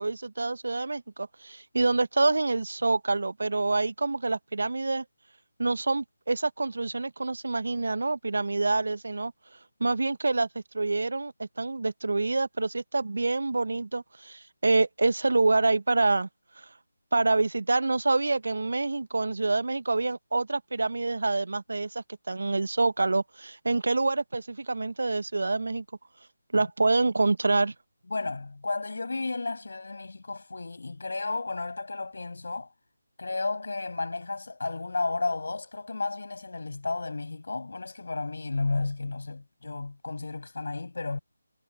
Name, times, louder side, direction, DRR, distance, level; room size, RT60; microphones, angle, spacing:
voice 1, 0.0-5.0 5.6-9.3 9.8-10.5 10.7-16.3 16.6-16.7 17.1-25.8 26.5-27.7, right 3 dB, 65° right, 1.0 m, -26 dB
voice 2, 28.1-32.7 33.2-41.2, left 3 dB, 65° left, 6.3 m, -33 dB
figure-of-eight pair, 160°, 0 cm